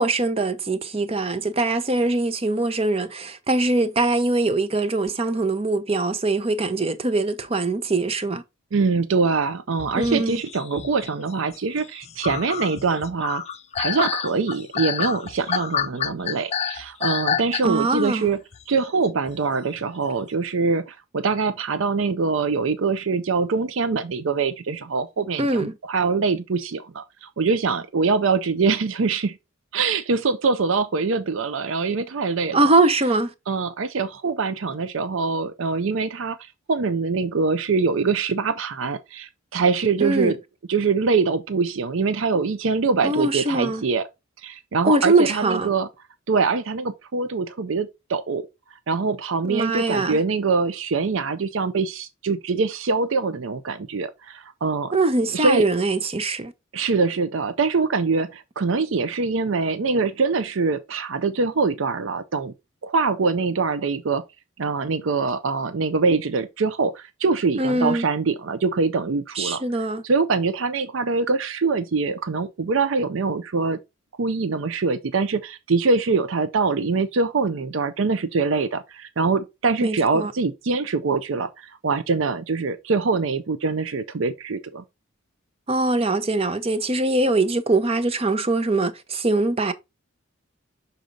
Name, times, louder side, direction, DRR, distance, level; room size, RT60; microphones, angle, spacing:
voice 1, 0.0-8.4 9.9-10.4 17.6-18.3 25.4-25.7 32.5-33.3 40.0-40.3 43.0-43.8 44.8-45.7 49.4-50.2 54.9-56.5 67.6-68.1 69.4-70.0 79.8-80.3 85.7-89.7, right 2 dB, 30° right, 0.7 m, -22 dB
voice 2, 8.7-13.4 13.8-18.4 18.7-29.4 29.7-32.6 33.5-40.4 40.7-44.1 44.4-45.9 46.3-48.4 48.9-54.9 55.3-55.7 56.7-62.5 62.8-64.2 64.6-69.6 70.0-73.8 74.2-84.8, right 4 dB, 65° right, 0.5 m, -24 dB
sound 1, 9.8-18.0 18.3-18.6 19.3-19.4 19.8-20.1, left 7 dB, 30° left, 0.4 m, -29 dB
6.4 x 4.1 x 3.8 m
head